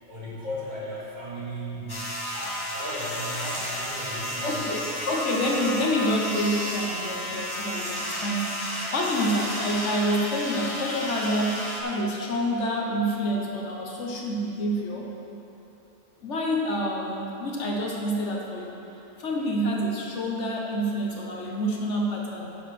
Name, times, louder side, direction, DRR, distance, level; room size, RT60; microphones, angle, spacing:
voice 1, 0.1-4.7 5.0-5.1, equal, 35° right, -8 dB, 2.3 m, -36 dB
sound 1, 1.9-11.8, left 1 dB, 20° left, 1.1 m, -32 dB
voice 2, 4.4-15.1 16.2-18.8 19.2-22.5, equal, 65° left, -1 dB, 1.4 m, -28 dB
10.0 x 6.5 x 5.9 m, 3.0 s
omnidirectional pair, 1.3 m